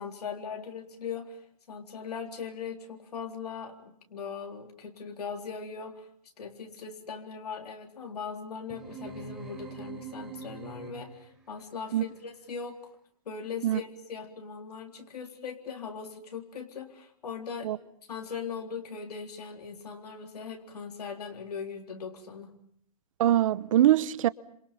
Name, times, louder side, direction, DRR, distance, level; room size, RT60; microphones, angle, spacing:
voice 1, 0.0-1.4 1.7-6.1 6.4-12.8 13.3-17.7 18.1-22.5, left 6 dB, 85° left, 3.8 m, -39 dB
sound 1, 8.7-11.3, right 5 dB, 5° right, 6.5 m, -43 dB
voice 2, 23.2-24.3, right 12 dB, 60° right, 0.9 m, -23 dB
29.0 x 26.5 x 5.8 m
hypercardioid pair, 145°, 19 cm